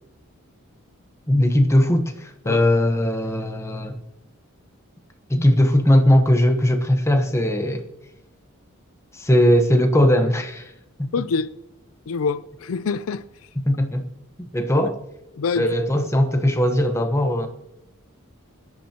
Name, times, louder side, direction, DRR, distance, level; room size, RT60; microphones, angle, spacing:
voice 1, 1.3-4.0 5.3-7.8 9.1-10.7 11.0-11.1 13.7-14.1 14.5-15.0 15.6-17.5, left 1 dB, 15° left, 0.9 m, -19 dB
voice 2, 11.1-11.5 12.1-13.2 15.3-15.7, left 5 dB, 80° left, 0.4 m, -25 dB
23.5 x 10.5 x 2.9 m
head